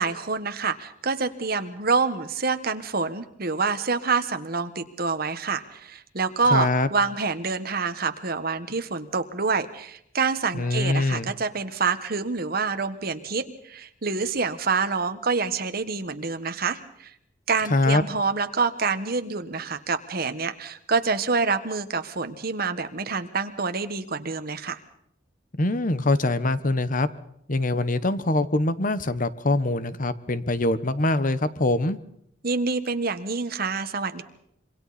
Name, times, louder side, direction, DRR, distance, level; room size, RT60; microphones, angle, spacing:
voice 1, 0.0-17.1 17.5-24.8 32.4-34.2, right 4 dB, 55° right, 9 dB, 1.5 m, -27 dB
voice 2, 6.5-6.9 10.5-11.3 17.7-18.0 25.6-27.1 27.5-32.0, left 2 dB, 45° left, 13 dB, 1.2 m, -23 dB
26.5 x 24.0 x 4.3 m, 0.72 s
head